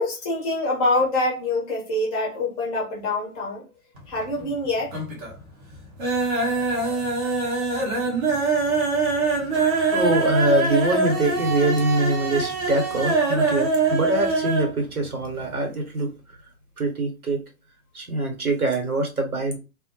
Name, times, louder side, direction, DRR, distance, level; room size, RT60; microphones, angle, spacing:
voice 1, 0.0-3.6 4.1-5.0, left 2 dB, 15° left, 0.7 m, -25 dB
sound 1, 4.0-4.6 4.9-5.4 5.7-14.7 15.0-15.1 15.4-15.5, right 3 dB, 25° right, 0.6 m, -24 dB
voice 2, 9.9-16.1 16.8-17.4 17.9-19.6, right 2 dB, 80° right, 1.1 m, -23 dB
2.1 x 2.0 x 2.8 m
figure-of-eight pair, 115°, 43 cm